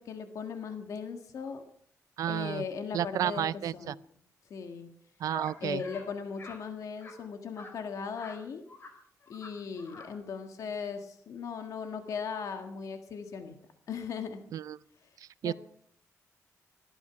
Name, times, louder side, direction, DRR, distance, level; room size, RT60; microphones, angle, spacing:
voice 1, 0.0-1.6 2.3-4.0 4.5-4.9 5.6-8.6 9.3-13.6 13.9-14.4 15.4-15.5, left 6 dB, 70° left, 6 dB, 1.5 m, -38 dB
voice 2, 2.2-2.6 2.9-3.9 5.2-5.8 14.5-14.8 15.4-15.5, right 11 dB, 85° right, 19 dB, 0.5 m, -31 dB
sound 1, 5.3-5.5 5.8-6.1 6.4-6.6 7.0-7.1 7.6-7.7 8.1-8.4 8.7-8.9 9.2-9.5 9.8-10.1, left 3 dB, 40° left, 4.3 m, -47 dB
18.0 x 12.0 x 5.8 m, 0.66 s
cardioid pair, 125°, 6 cm